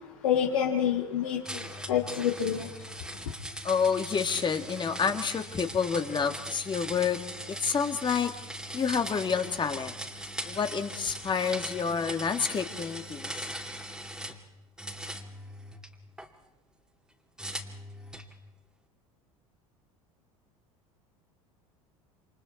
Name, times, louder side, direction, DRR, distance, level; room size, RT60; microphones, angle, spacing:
voice 1, 0.2-2.7 3.2-3.3, left 9 dB, 75° left, 0 dB, 2.5 m, -28 dB
sound 1, 1.4-14.4 14.8-16.3 17.4-18.3, right 1 dB, 5° right, 2.5 m, -40 dB
voice 2, 3.6-7.2 7.5-8.3 8.7-9.9 10.5-13.3, left 6 dB, 25° left, 7 dB, 2.1 m, -28 dB
28.0 x 27.5 x 4.3 m, 1.0 s
hypercardioid pair, 75°, 18 cm